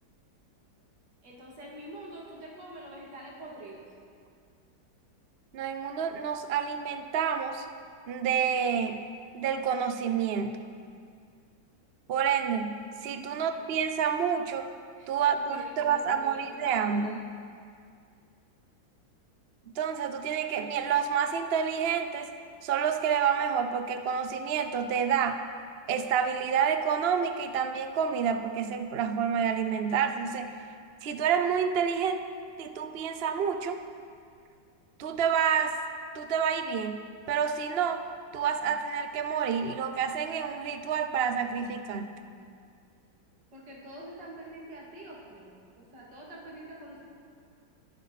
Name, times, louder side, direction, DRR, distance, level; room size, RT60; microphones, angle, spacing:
voice 1, 1.2-3.8 13.1-13.7 15.0-15.1 15.5-17.2 43.5-47.0, right 1 dB, 75° right, -4 dB, 3.2 m, -45 dB
voice 2, 5.5-7.7 8.1-9.0 9.3-10.6 12.1-14.7 15.1-17.2 19.7-22.3 22.6-25.4 25.9-30.6 31.0-32.2 32.6-33.8 35.0-35.8 36.1-37.0 37.3-38.0 38.3-42.1, right 7 dB, 55° right, 8 dB, 0.7 m, -28 dB
25.5 x 10.0 x 4.2 m, 2.2 s
omnidirectional pair, 1.9 m